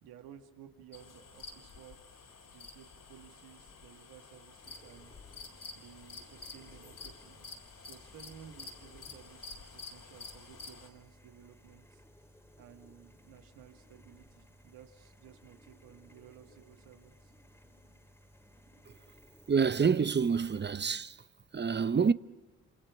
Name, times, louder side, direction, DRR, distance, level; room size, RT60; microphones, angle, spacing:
voice 1, 0.0-2.0 2.4-5.2 5.8-7.4 7.8-12.0 12.6-17.3, right 9 dB, 90° right, 1.8 m, -55 dB
sound 1, 0.9-10.9, left 4 dB, 65° left, 4.0 m, -50 dB
sound 2, 4.6-20.7, equal, 5° left, 2.5 m, -60 dB
voice 2, 19.5-21.2 21.5-22.1, right 6 dB, 30° right, 0.8 m, -27 dB
27.0 x 27.0 x 6.1 m
supercardioid pair, 55°, 34 cm